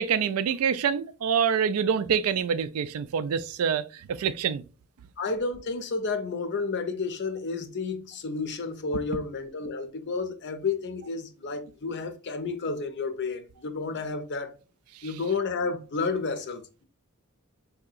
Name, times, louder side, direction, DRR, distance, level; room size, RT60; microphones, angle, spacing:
voice 1, 0.0-4.6, right 7 dB, 85° right, 0.4 m, -26 dB
voice 2, 5.2-14.5 15.0-16.8, left 4 dB, 55° left, 0.6 m, -31 dB
4.6 x 2.8 x 2.4 m
head